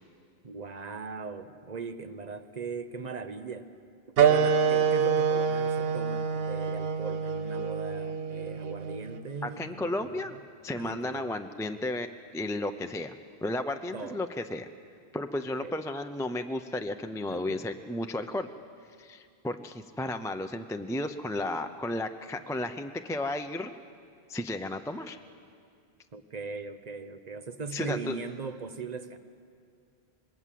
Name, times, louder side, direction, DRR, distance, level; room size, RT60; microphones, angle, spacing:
voice 1, 0.4-3.7 4.2-10.4 10.8-11.3 13.9-14.2 15.6-15.7 17.3-17.6 26.1-29.2, right 4 dB, 40° right, 10 dB, 1.0 m, -39 dB
sound 1, 4.2-9.3, right 6 dB, 70° right, 1.0 m, -26 dB
voice 2, 9.4-10.4 10.6-12.1 12.3-13.1 13.4-14.7 15.1-18.5 19.0-23.7 24.3-25.2 27.7-28.2, left 1 dB, 5° left, 6 dB, 0.5 m, -33 dB
25.5 x 20.5 x 7.6 m, 2.3 s
omnidirectional pair, 1.1 m